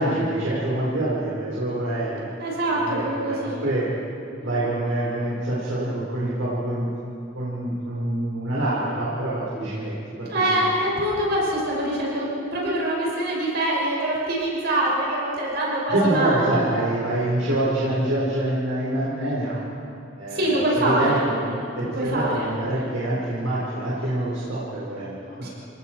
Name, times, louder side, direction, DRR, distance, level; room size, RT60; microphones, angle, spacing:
voice 1, 0.0-2.3 2.7-3.8 4.4-10.7 15.9-19.6 20.2-21.4 21.7-25.5, right 1 dB, 85° right, -7 dB, 4.8 m, -26 dB
voice 2, 2.4-3.6 4.4-4.5 10.3-16.8 17.5-17.6 20.3-22.9 25.4-25.5, right 1 dB, 55° right, -4 dB, 6.4 m, -25 dB
30.0 x 19.0 x 4.7 m, 2.6 s
head